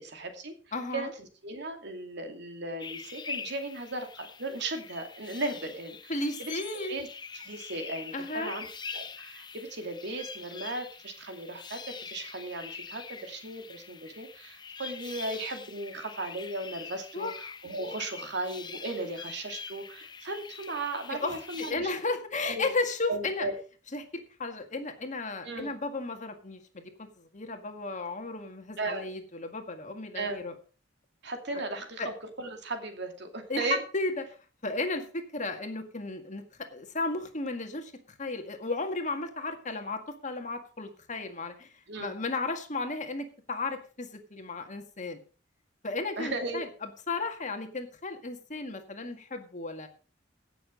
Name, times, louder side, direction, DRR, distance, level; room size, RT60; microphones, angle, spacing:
voice 1, 0.0-0.5 0.9-6.1 6.4-6.5 6.9-7.1 7.3-8.7 8.9-22.0 22.4-22.7 23.1-23.6 25.4-25.7 28.8-29.1 30.1-30.4 31.2-33.8 41.9-42.2 46.2-46.7, right 2 dB, 65° right, 5 dB, 2.6 m, -36 dB
voice 2, 0.7-1.1 6.1-6.9 8.1-8.6 17.1-17.3 21.1-23.5 23.9-24.0 24.4-30.5 32.0-32.1 33.5-34.2 34.6-36.4 36.7-37.9 38.2-41.7 42.0-45.2 45.8-49.9, left 3 dB, 40° left, 6 dB, 1.9 m, -34 dB
sound 1, 2.8-21.7, left 5 dB, 25° left, 0.7 m, -44 dB
16.5 x 6.9 x 5.2 m, 0.37 s
head